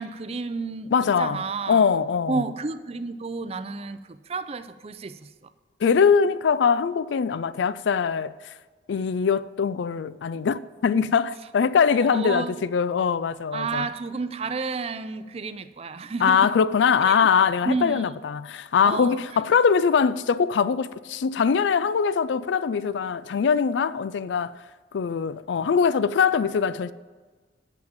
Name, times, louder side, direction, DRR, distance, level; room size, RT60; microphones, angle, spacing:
voice 1, 0.0-0.9 1.2-1.8 2.3-5.3 11.9-12.5 13.5-16.5 17.0-17.3 17.6-18.1 18.8-19.5, right 4 dB, 35° right, 0.4 m, -31 dB
voice 2, 0.9-1.4 1.7-2.4 5.8-8.3 8.9-13.9 16.2-24.6 24.9-26.9, left 6 dB, 80° left, 0.4 m, -22 dB
8.8 x 6.1 x 7.3 m
head